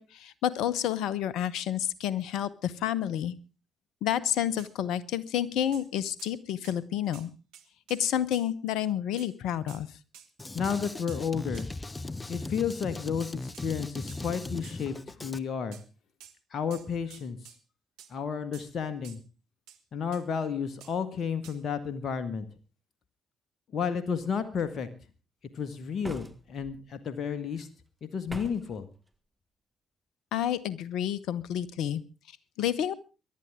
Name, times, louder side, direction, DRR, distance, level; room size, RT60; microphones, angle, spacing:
voice 1, 0.0-3.3 4.0-7.3 7.9-9.9 30.3-32.0 32.6-33.0, left 10 dB, 70° left, 18 dB, 0.9 m, -29 dB
sound 1, 4.6-4.7 5.7-5.9 6.2-6.4 6.6-6.8 7.1-7.3 7.5-8.5 9.2-9.3 9.7-9.8 10.1-10.3 10.6-10.8 11.1-11.2 11.5-11.7 13.5-13.7 14.1-14.2 14.6-14.8 15.7-15.9 16.2-16.4 16.7-17.6 18.0-18.1 18.5-18.7 19.0-19.2 19.7-19.8 20.1-20.2 20.8-21.0 21.4-21.6, right 10 dB, 75° right, 1.4 m, -51 dB
Drum kit, 10.4-15.4, left 2 dB, 25° left, 1.1 m, -38 dB
voice 2, 10.5-11.7 12.3-15.8 16.5-17.4 18.1-19.2 19.9-22.5 23.7-24.9 25.6-27.7 28.0-28.9, left 6 dB, 55° left, 10 dB, 1.7 m, -32 dB
sound 2, 26.0-26.8 28.3-28.8, right 1 dB, 15° right, 1.7 m, -42 dB
23.0 x 11.5 x 3.7 m, 0.33 s
hypercardioid pair, 45°, 0 cm